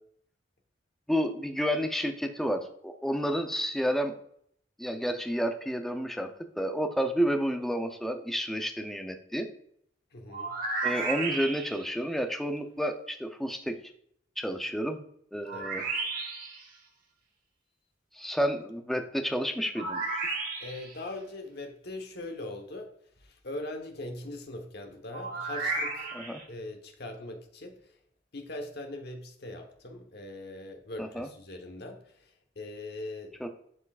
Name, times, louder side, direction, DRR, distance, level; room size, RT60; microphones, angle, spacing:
voice 1, 1.1-4.2 4.8-6.3 6.6-9.5 10.8-13.8 14.4-15.0 15.3-15.8 18.1-20.1 26.1-26.4 31.0-31.3 33.4-33.5, equal, ahead, 5 dB, 0.5 m, -30 dB
voice 2, 10.1-10.6 15.5-15.7 20.6-26.2 26.5-27.9 28.3-33.3, left 2 dB, 60° left, 4 dB, 1.1 m, -41 dB
sound 1, 10.3-11.9 15.5-16.6 19.7-21.0 25.1-26.4, right 3 dB, 50° right, 1.3 m, -33 dB
11.0 x 4.5 x 2.4 m, 0.68 s
head